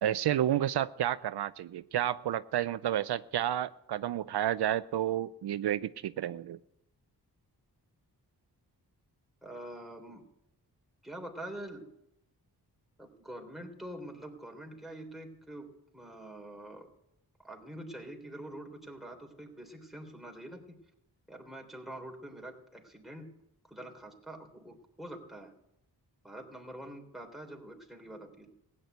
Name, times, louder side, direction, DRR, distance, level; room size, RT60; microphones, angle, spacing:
voice 1, 0.0-6.6, right 11 dB, 75° right, 15 dB, 0.5 m, -31 dB
voice 2, 9.4-10.3 11.0-11.9 13.0-16.9 17.4-20.8 21.3-23.3 23.6-25.5 26.2-28.5, right 1 dB, ahead, 1 dB, 3.3 m, -45 dB
16.5 x 9.9 x 8.0 m, 0.83 s
cardioid pair, 70°, 39 cm